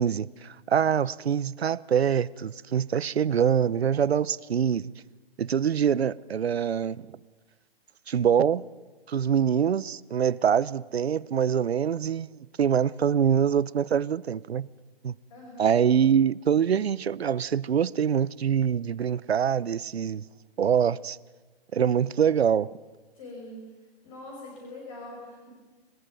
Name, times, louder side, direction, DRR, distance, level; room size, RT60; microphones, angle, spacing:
voice 1, 0.0-4.9 5.4-7.1 8.1-8.6 9.1-14.7 15.0-15.1 15.6-20.3 20.6-21.2 21.7-22.7, right 8 dB, 80° right, 0.9 m, -24 dB
voice 2, 15.3-15.8 23.1-23.6 24.0-25.5, left 2 dB, 30° left, 5.9 m, -43 dB
27.0 x 19.5 x 9.3 m
hypercardioid pair, 165°, 31 cm